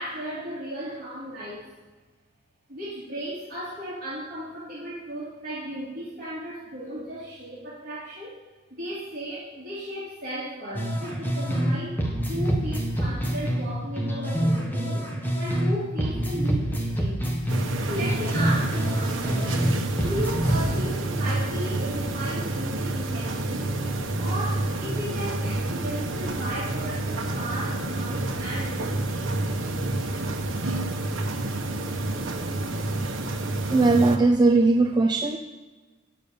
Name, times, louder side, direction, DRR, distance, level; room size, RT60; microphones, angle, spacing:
voice 1, 0.0-1.7 2.7-8.4 8.7-12.0 12.3-15.0 15.4-17.3 17.9-19.6 20.0-23.8 24.2-29.4 32.7-32.8, right 1 dB, 45° right, -9 dB, 2.7 m, -35 dB
sound 1, 10.7-11.7 12.0-15.7 16.0-19.7 20.0-20.8, right 1 dB, 10° left, 1.4 m, -26 dB
sound 2, 17.5-34.2, right 2 dB, 80° right, 1.1 m, -29 dB
voice 2, 33.7-35.4, right 3 dB, 20° right, 3 dB, 0.5 m, -19 dB
9.3 x 6.9 x 6.8 m, 1.3 s
head